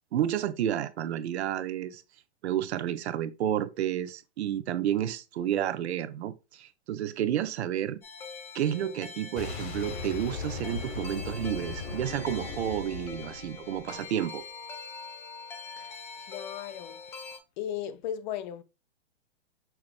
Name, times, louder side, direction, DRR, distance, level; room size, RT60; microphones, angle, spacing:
voice 1, 0.1-2.0 2.4-8.0 8.5-14.4, right 11 dB, 75° right, 0.7 m, -31 dB
sound 1, 8.0-17.4, left 4 dB, 10° left, 0.3 m, -43 dB
Boom, 9.4-14.2, left 4 dB, 70° left, 1.7 m, -38 dB
voice 2, 15.8-17.2 17.6-18.6, left 10 dB, 45° left, 0.6 m, -37 dB
5.9 x 3.3 x 2.4 m
hypercardioid pair, 140°, 34 cm